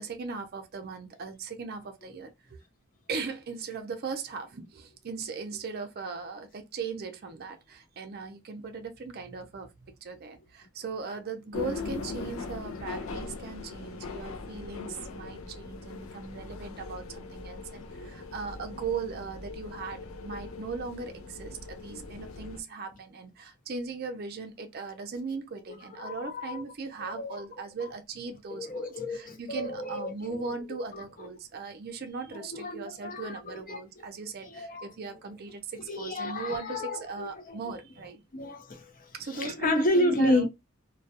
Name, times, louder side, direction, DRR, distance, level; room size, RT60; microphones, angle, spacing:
voice 1, 0.0-2.6 3.1-38.2 39.1-40.5, right 4 dB, 50° right, 0.5 m, -38 dB
sound 1, 11.5-22.6, left 4 dB, 90° left, 0.4 m, -40 dB
voice 2, 25.9-26.6 27.0-27.4 28.5-30.4 30.9-31.0 32.3-33.8 34.5-34.9 35.9-37.6 38.3-40.5, left 1 dB, 45° left, 0.6 m, -31 dB
2.2 x 2.2 x 2.7 m
head